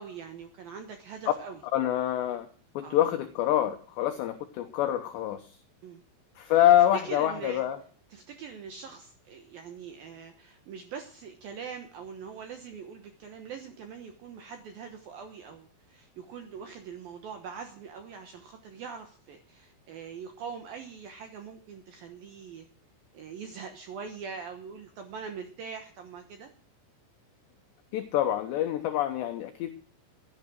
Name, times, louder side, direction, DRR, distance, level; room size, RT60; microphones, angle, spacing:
voice 1, 0.0-1.6 2.8-3.0 5.8-6.0 6.4-6.5 6.9-7.6 8.1-22.7 23.1-26.5, right 6 dB, 75° right, 6 dB, 2.2 m, -42 dB
voice 2, 1.7-2.5 2.7-5.6 6.4-7.8 27.9-29.7, left 12 dB, 75° left, 7 dB, 2.8 m, -26 dB
16.0 x 9.9 x 6.3 m, 0.42 s
omnidirectional pair, 5.8 m